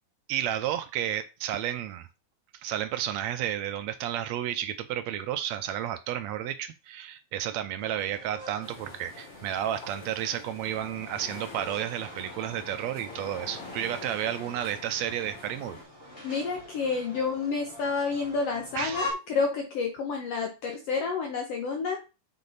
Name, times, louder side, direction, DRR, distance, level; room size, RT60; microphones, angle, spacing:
voice 1, 0.3-2.1 2.6-15.8 18.8-19.1, right 11 dB, 80° right, 1.8 m, -32 dB
sound 1, 7.8-19.1, left 2 dB, 20° left, 2.4 m, -44 dB
sound 2, 8.6-15.8, left 3 dB, 90° left, 4.2 m, -45 dB
voice 2, 16.2-22.0, left 4 dB, 65° left, 1.9 m, -29 dB
8.5 x 4.5 x 4.0 m
omnidirectional pair, 3.3 m